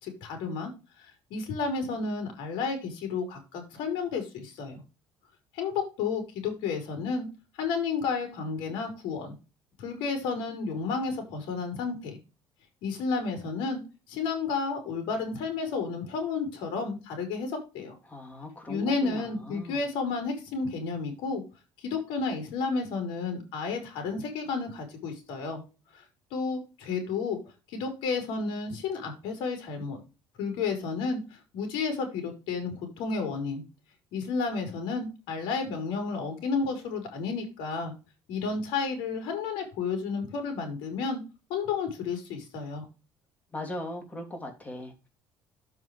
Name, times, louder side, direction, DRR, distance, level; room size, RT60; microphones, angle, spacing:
voice 1, 0.0-0.7 1.3-4.8 5.5-7.3 7.6-9.3 9.8-12.2 12.8-13.8 14.1-17.9 18.7-21.4 21.8-25.6 25.9-26.0 26.3-27.4 27.7-30.0 30.4-33.6 34.1-37.9 38.3-41.2 41.5-42.8, left 4 dB, 80° left, 5 dB, 4.5 m, -31 dB
voice 2, 18.0-19.8 43.5-45.1, left 1 dB, 20° left, 4 dB, 2.9 m, -39 dB
9.2 x 7.9 x 3.2 m, 0.30 s
cardioid pair, 130°, 8 cm